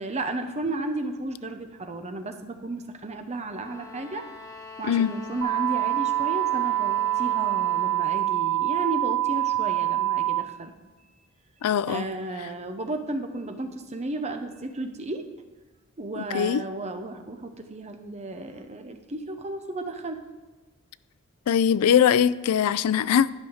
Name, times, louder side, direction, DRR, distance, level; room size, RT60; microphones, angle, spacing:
voice 1, 0.0-4.2 4.6-10.7 11.0-11.2 11.9-15.2 16.0-20.2, right 2 dB, 30° right, 6 dB, 0.8 m, -33 dB
sound 1, 3.5-8.2, left 3 dB, 15° left, 1.1 m, -43 dB
sound 2, 5.4-10.4, right 14 dB, 60° right, 0.6 m, -25 dB
voice 2, 11.6-12.0 16.2-16.6 21.5-23.3, left 8 dB, 85° left, 17 dB, 0.3 m, -21 dB
11.5 x 5.6 x 6.3 m, 1.2 s
head